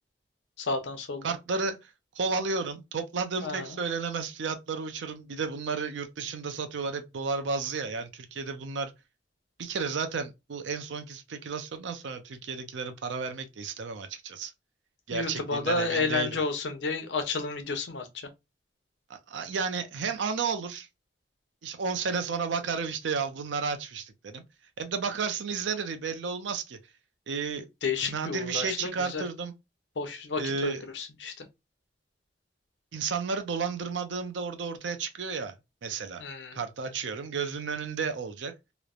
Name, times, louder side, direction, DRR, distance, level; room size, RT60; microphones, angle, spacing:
voice 1, 0.6-1.3 3.4-3.8 15.1-18.3 27.8-29.2 30.0-31.5 36.2-36.6, left 4 dB, 80° left, 0.7 m, -31 dB
voice 2, 1.2-8.9 9.6-14.5 15.1-16.4 19.1-20.9 21.6-24.4 24.8-26.8 27.3-27.7 28.0-29.5 30.4-30.8 32.9-35.5 35.8-36.2 36.6-38.5, right 5 dB, 85° right, 0.5 m, -32 dB
3.0 x 2.0 x 2.3 m
head